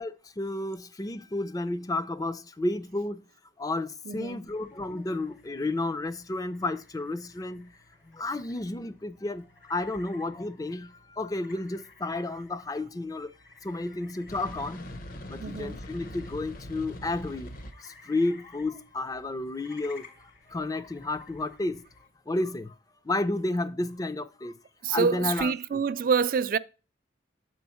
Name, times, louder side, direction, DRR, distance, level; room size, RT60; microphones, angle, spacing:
voice 1, 0.0-3.2 3.6-7.7 8.1-13.3 13.6-14.9 15.3-17.5 17.8-20.1 20.5-21.8 22.3-22.8 23.0-24.6 24.9-25.8, left 2 dB, 20° left, 0.4 m, -32 dB
voice 2, 4.1-4.4 15.4-15.8 24.8-26.6, right 6 dB, 50° right, 0.3 m, -26 dB
sound 1, 4.5-22.1, left 3 dB, 90° left, 2.4 m, -56 dB
sound 2, 14.3-17.7, left 1 dB, 50° left, 0.7 m, -41 dB
7.6 x 4.5 x 4.1 m
head